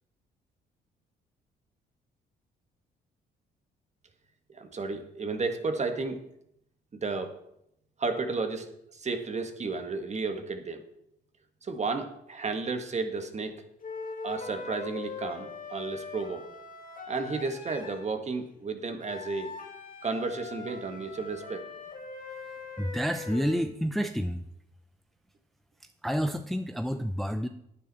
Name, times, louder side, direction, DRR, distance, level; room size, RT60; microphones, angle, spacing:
voice 1, 4.5-6.2 6.9-7.4 8.0-10.8 11.6-13.6 14.2-16.5 17.1-19.5 20.0-21.6, right 4 dB, 35° right, 7 dB, 1.6 m, -33 dB
sound 1, 13.8-18.1 19.0-23.7, left 4 dB, 45° left, 2.2 m, -41 dB
voice 2, 22.8-24.5 25.8-27.5, equal, ahead, 8 dB, 0.6 m, -29 dB
11.0 x 9.4 x 4.2 m, 0.77 s
supercardioid pair, 65°, 19 cm